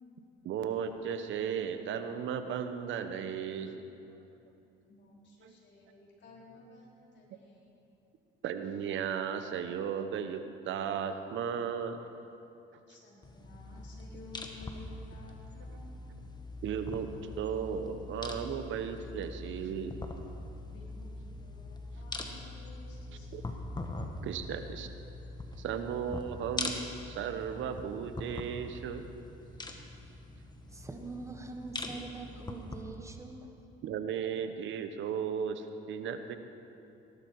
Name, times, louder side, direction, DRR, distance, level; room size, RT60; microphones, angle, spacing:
voice 1, 0.4-3.8 5.4-5.5 8.4-12.0 16.6-17.1 17.4-20.0 23.3-23.4 24.2-24.9 25.6-29.0 33.8-36.4, right 7 dB, 65° right, 8 dB, 1.1 m, -35 dB
voice 2, 4.9-8.0 12.9-16.0 20.6-23.6, left 2 dB, 60° left, -4 dB, 4.3 m, -54 dB
sound 1, 13.2-32.8, left 2 dB, 20° left, 1.5 m, -42 dB
voice 3, 30.7-33.6, right 3 dB, 15° right, 4 dB, 1.5 m, -44 dB
17.5 x 12.0 x 4.8 m, 2.8 s
supercardioid pair, 80°, 21 cm